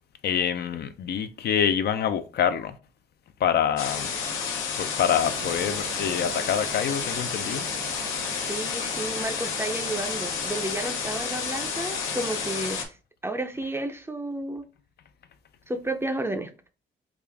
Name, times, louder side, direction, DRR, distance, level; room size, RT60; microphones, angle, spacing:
voice 1, 0.2-2.8 3.4-4.2 4.6-7.7 8.2-8.4, left 8 dB, 55° left, 0.4 m, -26 dB
sound 1, 3.8-12.9, left 6 dB, 90° left, 0.7 m, -31 dB
sound 2, 5.1-12.8, right 4 dB, 60° right, 0.9 m, -42 dB
voice 2, 8.5-12.9 13.2-14.6 15.7-16.5, right 2 dB, 10° right, 0.5 m, -32 dB
3.5 x 2.4 x 3.4 m
cardioid pair, 90°, 20 cm